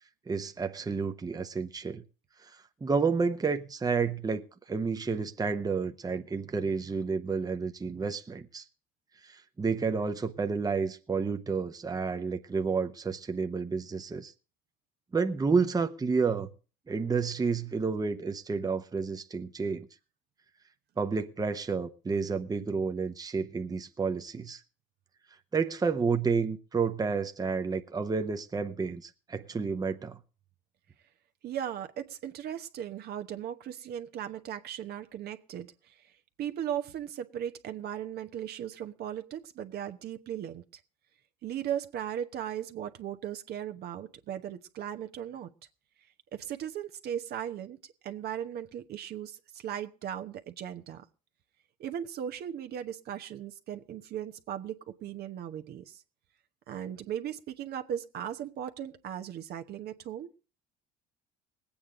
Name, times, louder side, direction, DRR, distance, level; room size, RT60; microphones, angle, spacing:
voice 1, 0.3-2.0 2.8-8.6 9.2-14.3 15.1-16.5 16.9-19.9 21.0-24.6 25.5-30.2, right 5 dB, 20° right, 0.9 m, -30 dB
voice 2, 31.4-36.0 36.4-40.6 41.4-45.5 46.3-51.0 51.8-56.0 56.7-60.3, right 10 dB, 60° right, 1.1 m, -37 dB
20.5 x 8.7 x 3.8 m
supercardioid pair, 75°, 19 cm